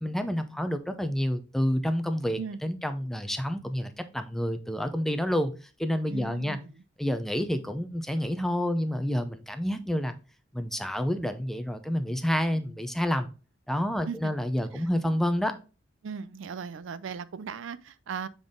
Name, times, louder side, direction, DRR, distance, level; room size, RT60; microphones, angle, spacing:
voice 1, 0.0-6.6 7.0-10.1 10.5-13.3 13.7-15.5, equal, ahead, 0.5 m, -29 dB
voice 2, 6.1-6.8 14.1-14.3 14.7-14.9 16.0-18.3, right 5 dB, 75° right, 0.4 m, -37 dB
6.9 x 3.9 x 3.6 m
head